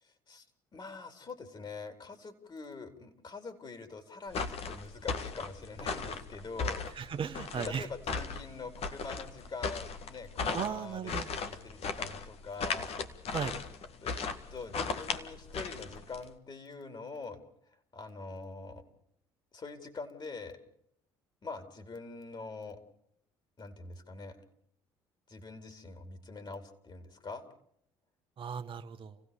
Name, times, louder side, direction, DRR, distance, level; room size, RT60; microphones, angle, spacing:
voice 1, 0.0-0.5 0.7-6.8 7.5-12.9 14.0-14.2 14.5-17.4 17.9-18.8 19.5-20.6 21.4-22.8 23.6-24.4 25.3-27.5, left 4 dB, 40° left, 9 dB, 4.3 m, -44 dB
sound 1, 4.3-16.3, left 5 dB, 55° left, 2.0 m, -37 dB
voice 2, 6.9-7.9 10.5-11.3 13.3-13.6 28.4-29.1, right 7 dB, 45° right, 7 dB, 1.4 m, -36 dB
29.0 x 16.5 x 7.1 m, 0.72 s
hypercardioid pair, 65°, 12 cm